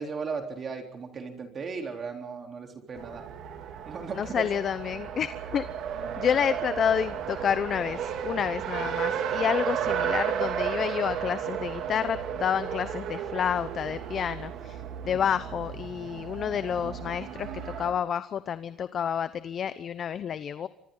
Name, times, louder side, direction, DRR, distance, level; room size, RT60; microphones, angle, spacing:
voice 1, 0.0-3.2 3.9-4.5 15.0-15.2, right 5 dB, 35° right, 3 dB, 3.7 m, -36 dB
Race car auto racing, 2.9-17.9, right 8 dB, 60° right, 3.4 m, -33 dB
voice 2, 4.1-5.7 6.2-20.7, left 8 dB, 45° left, 13 dB, 0.8 m, -29 dB
28.5 x 24.5 x 4.0 m, 0.79 s
cardioid pair, 120°, 0 cm